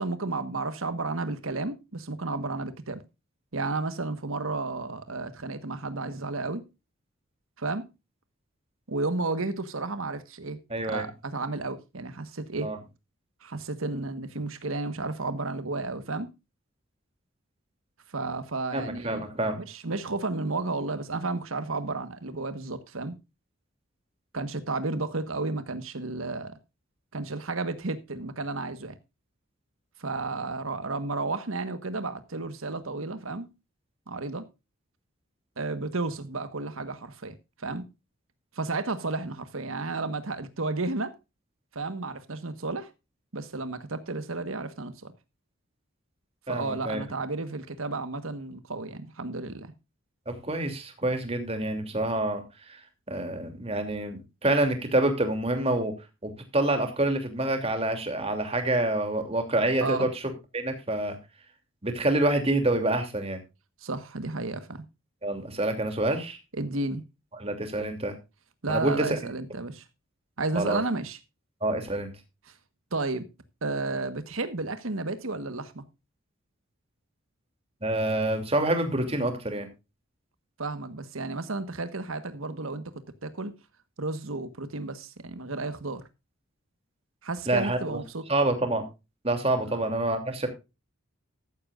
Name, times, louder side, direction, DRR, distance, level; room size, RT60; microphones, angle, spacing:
voice 1, 0.0-3.0 3.5-6.6 7.6-7.9 8.9-10.6 10.8-12.7 13.4-16.3 18.1-19.3 19.7-23.2 24.3-26.6 27.1-28.9 30.0-33.5 34.1-34.4 35.6-37.9 38.5-41.1 41.7-42.9 43.3-45.1 46.5-49.7 59.8-60.1 63.8-64.8 66.5-67.0 68.6-69.8 70.4-71.2 72.4-72.5 72.9-73.2 73.6-75.8 80.6-82.8 83.2-83.5 84.0-86.0 87.2-88.2 89.6-89.8, right 3 dB, 85° right, 1.4 m, -32 dB
voice 2, 10.7-11.0 12.6-12.8 18.7-19.6 46.5-47.0 50.3-52.4 53.1-55.9 56.2-60.1 60.5-61.1 61.8-63.4 65.2-66.4 67.3-68.1 68.7-69.3 70.5-70.8 71.6-72.1 77.8-79.7 87.5-88.0 88.3-88.8 89.2-90.5, right 1 dB, 30° right, 2.8 m, -27 dB
14.5 x 12.5 x 2.5 m
head